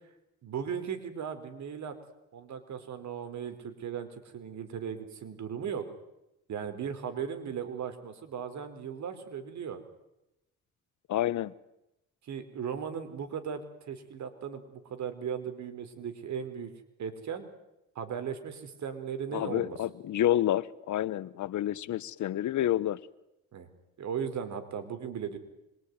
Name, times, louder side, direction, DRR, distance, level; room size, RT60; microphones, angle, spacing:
voice 1, 0.4-1.9 2.3-5.8 6.5-9.8 12.2-16.7 17.0-17.5 17.9-19.8 23.5-23.7 24.0-25.4, right 7 dB, 65° right, 9 dB, 4.6 m, -37 dB
voice 2, 11.1-11.5 19.3-23.0, left 12 dB, 70° left, 17 dB, 1.2 m, -29 dB
26.0 x 23.0 x 9.7 m, 0.89 s
cardioid pair, 90°, 30 cm